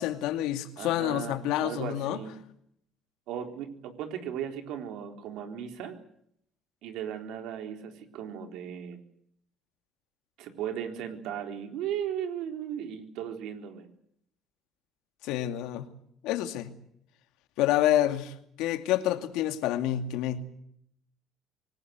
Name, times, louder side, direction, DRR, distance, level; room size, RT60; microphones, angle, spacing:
voice 1, 0.0-2.2 15.2-15.8 16.2-16.7 17.6-20.4, left 13 dB, 85° left, 2.3 m, -28 dB
voice 2, 0.8-2.4 3.3-6.0 6.8-9.0 10.4-13.9, right 9 dB, 75° right, 3.9 m, -36 dB
25.0 x 19.5 x 8.1 m
cardioid pair, 110°, 0 cm